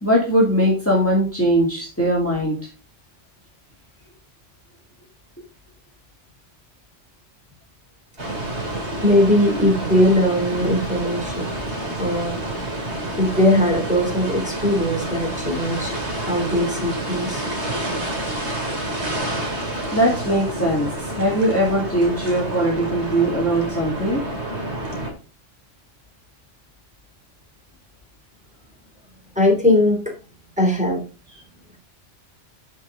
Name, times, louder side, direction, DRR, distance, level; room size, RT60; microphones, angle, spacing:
voice 1, 0.0-2.6 19.7-20.9 21.1-24.2, equal, 10° left, -4 dB, 2.6 m, -20 dB
sound 1, 8.2-25.1, right 1 dB, 65° right, 3.1 m, -28 dB
voice 2, 9.0-11.5 12.0-12.4 13.2-15.9 16.2-17.4 20.0-20.1 29.3-30.0 30.6-31.0, left 1 dB, 5° right, -1 dB, 3.1 m, -19 dB
11.5 x 5.6 x 3.8 m, 0.34 s
omnidirectional pair, 1.2 m